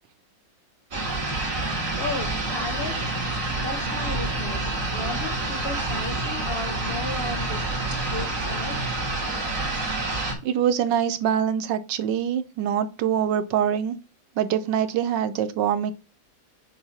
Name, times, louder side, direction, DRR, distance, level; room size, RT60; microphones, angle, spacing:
sound 1, 0.9-10.3, right 2 dB, 45° right, 2.1 m, -28 dB
voice 1, 2.0-2.9 3.5-7.7 8.0-8.8, left 3 dB, 45° left, 0.9 m, -35 dB
voice 2, 10.4-14.0 14.4-15.9, right 9 dB, 75° right, 1.3 m, -24 dB
6.7 x 2.7 x 5.6 m
omnidirectional pair, 2.0 m